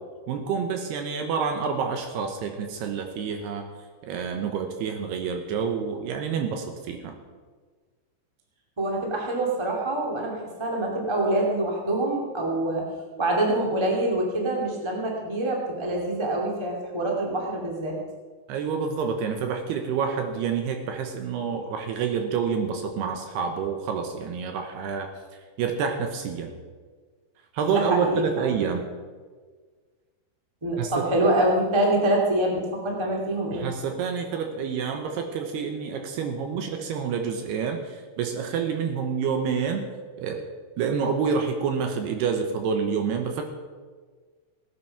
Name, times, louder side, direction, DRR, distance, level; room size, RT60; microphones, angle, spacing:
voice 1, 0.3-3.7 4.0-7.1 18.5-26.5 27.5-28.8 30.8-31.0 33.5-39.8 40.2-40.4 40.8-43.4, right 6 dB, 70° right, 5 dB, 2.7 m, -28 dB
voice 2, 8.8-12.8 13.2-18.0 27.7-28.6 30.6-33.7, right 1 dB, 20° right, -1 dB, 0.8 m, -25 dB
17.0 x 9.7 x 5.9 m, 1.5 s
omnidirectional pair, 5.5 m